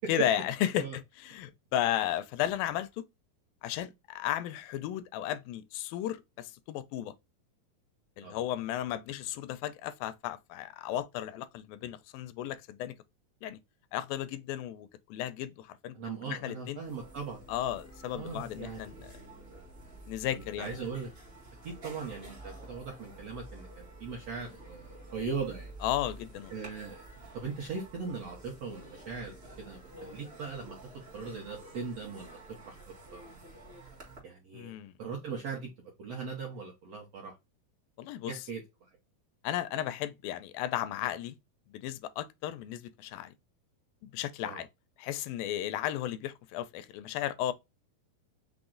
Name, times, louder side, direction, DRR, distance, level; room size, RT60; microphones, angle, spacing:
voice 1, 0.1-3.0 3.6-7.1 8.2-12.9 13.4-13.6 13.9-16.0 16.3-16.8 17.5-19.1 20.1-20.8 25.8-26.5 34.5-34.9 38.0-38.4 39.4-41.4 41.7-43.3 44.0-44.7 45.0-47.5, left 12 dB, 85° left, 2.3 m, -34 dB
voice 2, 15.9-17.4 18.1-19.6 20.3-21.1 21.6-25.7 26.5-27.1 27.3-30.8 31.1-33.2 34.2-34.7 35.0-35.7 36.0-37.3 38.2-38.6 44.4-44.6, right 5 dB, 75° right, 1.5 m, -40 dB
sound 1, 16.7-34.2, right 1 dB, 55° right, 0.7 m, -50 dB
5.8 x 2.1 x 3.7 m
omnidirectional pair, 4.1 m